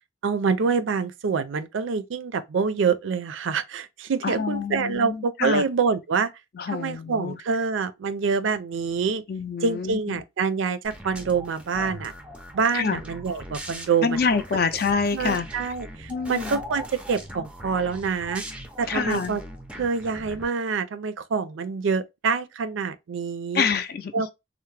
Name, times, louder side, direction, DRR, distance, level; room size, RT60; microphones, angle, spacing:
voice 1, 0.2-6.3 6.7-9.2 9.6-12.1 12.5-14.2 15.1-18.4 18.8-19.4 19.8-23.7 24.1-24.3, right 5 dB, 80° right, 0.4 m, -26 dB
voice 2, 4.2-5.6 6.5-7.4 9.3-10.0 12.7-13.0 14.0-15.7 16.1-16.6 18.9-19.4 23.5-24.2, left 5 dB, 50° left, 0.4 m, -26 dB
sound 1, 10.8-20.5, equal, 5° right, 0.4 m, -40 dB
3.3 x 2.0 x 3.2 m
head